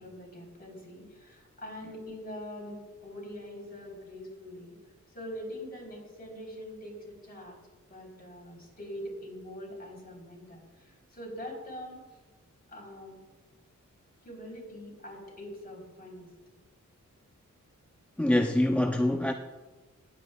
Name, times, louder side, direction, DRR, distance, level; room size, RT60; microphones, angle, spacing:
voice 1, 0.0-4.7 5.1-7.6 7.9-12.2 12.7-13.2 14.2-16.3, equal, 30° left, 3.6 m, -43 dB
voice 2, 18.2-19.3, left 1 dB, 5° left, 0.4 m, -25 dB
19.0 x 8.3 x 2.2 m
wide cardioid pair, 100°, 30 cm